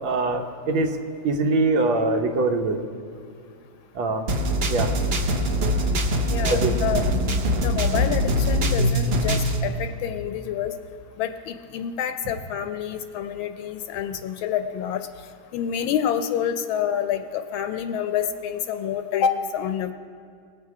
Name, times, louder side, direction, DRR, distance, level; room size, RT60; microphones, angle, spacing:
voice 1, 0.0-1.0 1.2-2.8 3.9-4.3 4.7-4.9 6.5-6.7, right 3 dB, 80° right, 4 dB, 1.6 m, -23 dB
sound 1, 4.3-9.6, equal, 60° right, 0.6 m, -23 dB
voice 2, 6.3-7.1 7.6-10.7 11.2-15.1 15.5-19.9, left 9 dB, 85° left, 9 dB, 1.4 m, -27 dB
20.0 x 7.5 x 4.8 m, 2.2 s
omnidirectional pair, 2.2 m